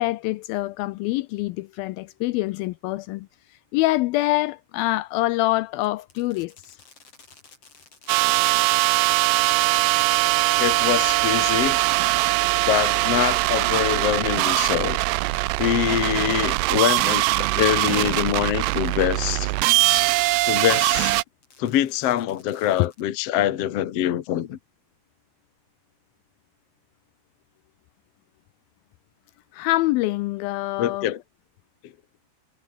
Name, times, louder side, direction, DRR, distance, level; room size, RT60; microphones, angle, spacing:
voice 1, 0.0-3.3 3.7-6.8 22.8-22.9 29.5-31.1, left 18 dB, 85° left, 2.1 m, -25 dB
Fireworks, 5.8-21.0 21.4-23.3, left 4 dB, 35° left, 5.4 m, -52 dB
sound 1, 8.1-21.2, right 21 dB, 90° right, 2.8 m, -21 dB
voice 2, 10.6-11.8 12.6-15.0 15.6-19.5 19.9-20.0 20.5-21.2 21.6-24.6 30.8-31.2, left 11 dB, 70° left, 1.5 m, -24 dB
omnidirectional pair, 4.8 m